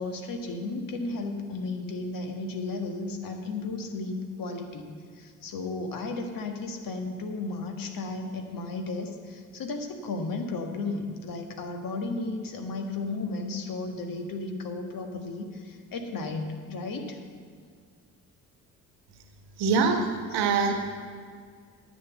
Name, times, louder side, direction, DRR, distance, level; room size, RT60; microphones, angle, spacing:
voice 1, 0.0-17.2, left 3 dB, 50° left, 4 dB, 1.6 m, -34 dB
voice 2, 19.6-20.9, right 4 dB, 60° right, 5 dB, 1.4 m, -24 dB
10.5 x 7.6 x 7.0 m, 2.1 s
figure-of-eight pair, 45°, 43 cm